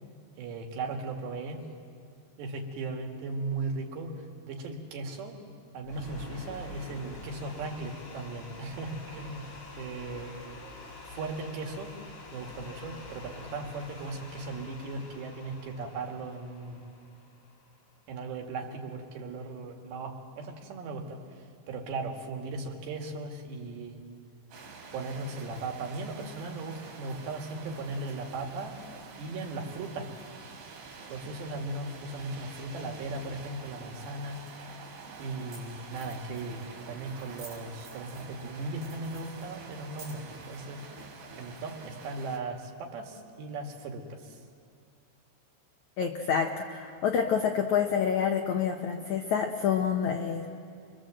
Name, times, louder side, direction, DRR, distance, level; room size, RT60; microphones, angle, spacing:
voice 1, 0.4-1.6 2.4-5.4 5.7-9.5 9.8-10.4 11.1-12.0 12.3-16.8 18.1-21.2 21.7-24.0 24.9-28.8 29.2-30.1 31.1-34.4 35.2-40.8 41.4-44.4, right 3 dB, 80° right, 2 dB, 4.3 m, -37 dB
sound 1, 5.8-18.0, left 2 dB, 45° left, 5.4 m, -46 dB
sound 2, 24.5-42.4, right 4 dB, 60° right, 4.0 m, -47 dB
sound 3, 35.5-35.6 35.9-36.7 37.1-38.4 38.7-40.4, right 3 dB, 35° right, 6.6 m, -51 dB
voice 2, 46.0-50.5, left 7 dB, 80° left, 3 dB, 1.7 m, -28 dB
29.0 x 23.0 x 7.8 m, 2.3 s
omnidirectional pair, 4.9 m